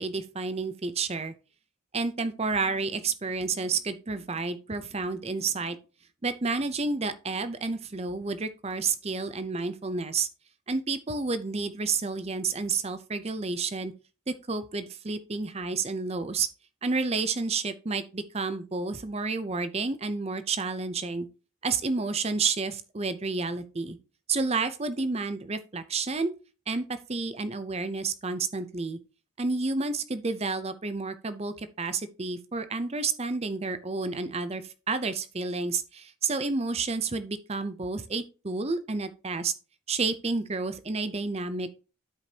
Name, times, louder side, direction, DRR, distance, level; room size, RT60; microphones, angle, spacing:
voice 1, 0.0-1.3 1.9-5.8 6.2-10.3 10.7-13.9 14.3-16.5 16.8-21.3 21.6-24.0 24.3-26.3 26.7-29.0 29.4-39.5 39.9-41.7, right 4 dB, 30° right, 0.6 m, -30 dB
12.0 x 5.0 x 2.8 m
head